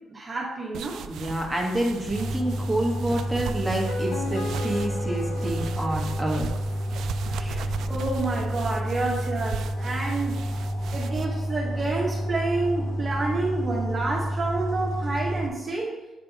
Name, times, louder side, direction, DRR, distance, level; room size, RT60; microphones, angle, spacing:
voice 1, 0.1-1.0 7.3-10.4 10.9-16.0, right 3 dB, 35° right, -3 dB, 1.0 m, -29 dB
sound 1, 0.7-11.3, right 8 dB, 75° right, 0.3 m, -38 dB
voice 2, 1.1-6.5, right 1 dB, ahead, -2 dB, 1.5 m, -28 dB
sound 2, 2.1-15.5, equal, 50° left, 1.3 m, -30 dB
sound 3, 3.7-6.8, left 2 dB, 80° left, 1.6 m, -35 dB
8.3 x 3.4 x 4.0 m, 1.1 s
cardioid pair, 90°, 0 cm